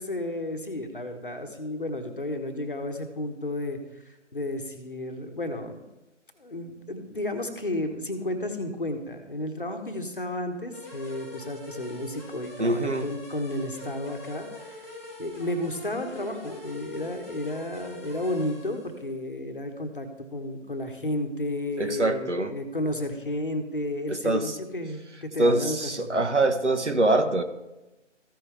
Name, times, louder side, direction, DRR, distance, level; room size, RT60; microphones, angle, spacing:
voice 1, 0.0-5.9 6.4-26.2, left 1 dB, 45° left, 6 dB, 1.1 m, -32 dB
sound 1, 10.7-19.0, left 1 dB, 10° left, 1.0 m, -43 dB
voice 2, 12.6-13.1 21.8-22.5 24.1-24.5 25.4-27.4, right 2 dB, 65° right, 6 dB, 1.2 m, -24 dB
14.5 x 5.5 x 3.3 m, 0.98 s
figure-of-eight pair, 160°, 37 cm